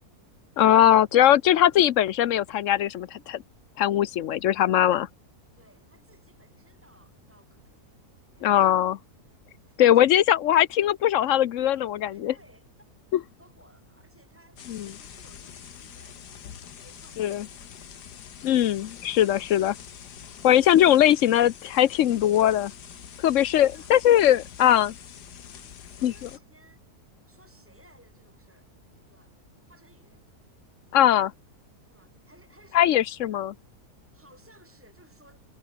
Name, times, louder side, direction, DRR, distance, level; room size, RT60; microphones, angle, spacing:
voice 1, 0.6-3.4 3.8-5.1 8.4-9.0 9.8-12.3 14.7-14.8 17.2-17.4 18.4-19.7 20.4-22.7 23.2-24.9 26.0-26.1 30.9-31.3 32.7-33.5, left 11 dB, 60° left, 0.9 m, -20 dB
voice 2, 5.5-7.9 8.3-9.4 9.7-10.2 12.1-12.7 13.4-16.3 16.6-18.0 20.2-20.5 23.1-23.9 25.5-26.8 27.3-29.3 29.7-30.2 31.8-32.9 34.1-35.4, right 1 dB, 5° right, 6.5 m, -59 dB
sound 1, 14.6-26.4, left 9 dB, 85° left, 1.9 m, -45 dB
omnidirectional pair, 1.7 m